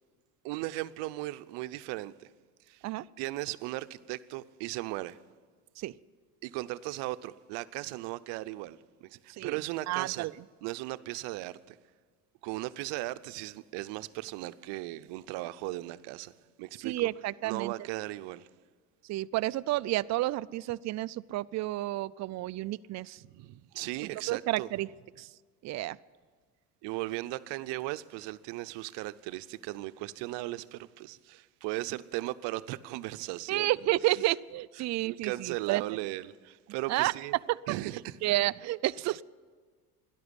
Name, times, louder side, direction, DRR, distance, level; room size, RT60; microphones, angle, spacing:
voice 1, 0.4-2.3 2.7-2.9 3.2-5.2 6.4-10.3 10.6-11.8 12.4-16.3 16.6-17.1 17.4-18.5 23.2-24.7 26.8-33.7 34.8-37.4 37.7-38.2, right 18 dB, 70° right, 0.7 m, -37 dB
voice 2, 9.9-10.3 16.8-17.7 19.1-23.2 24.3-24.9 25.2-25.3 25.6-26.0 33.5-35.8 36.9-37.1 38.2-39.2, right 17 dB, 40° right, 0.4 m, -30 dB
13.0 x 11.0 x 9.7 m
supercardioid pair, 80°, 44 cm